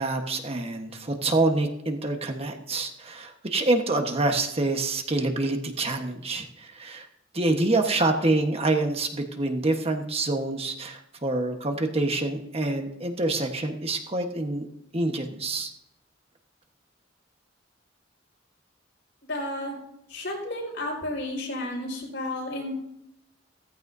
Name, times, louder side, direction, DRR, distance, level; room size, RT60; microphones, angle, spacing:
voice 1, 0.0-7.1 7.3-14.7 14.9-15.7, right 2 dB, 35° right, 4 dB, 1.3 m, -26 dB
voice 2, 19.2-19.7 20.1-22.7, left 1 dB, 70° left, 0 dB, 5.3 m, -32 dB
16.0 x 14.5 x 2.7 m, 0.80 s
head